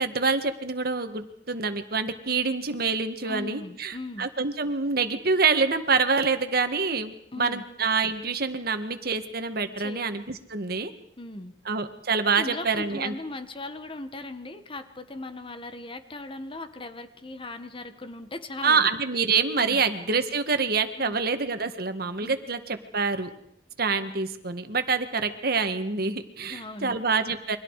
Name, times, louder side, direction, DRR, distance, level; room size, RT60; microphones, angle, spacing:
voice 1, 0.0-10.9 11.6-13.1 18.6-23.3 23.8-27.6, right 4 dB, 60° right, 8 dB, 1.8 m, -26 dB
voice 2, 3.2-4.3 7.3-7.6 9.8-10.0 11.2-11.5 12.3-18.9 19.6-19.8 21.0-21.1 22.2-22.3 26.4-27.0, left 2 dB, 30° left, 9 dB, 1.4 m, -38 dB
29.5 x 24.0 x 4.9 m, 0.73 s
head